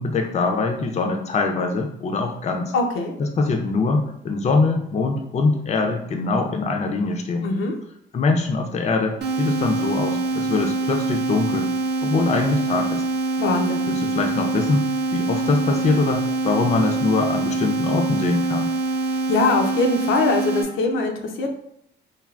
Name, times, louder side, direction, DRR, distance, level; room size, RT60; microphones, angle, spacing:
voice 1, 0.0-2.7 3.2-7.5 8.1-11.7 12.0-13.0 13.9-14.9 15.1-18.7, left 3 dB, 35° left, 3 dB, 0.4 m, -23 dB
voice 2, 2.7-3.1 7.4-7.8 13.4-13.8 19.3-21.5, left 3 dB, 85° left, 3 dB, 0.5 m, -22 dB
sound 1, 9.2-20.6, right 2 dB, 55° right, 0.6 m, -24 dB
3.3 x 2.3 x 2.4 m, 0.72 s
cardioid pair, 90°, 20 cm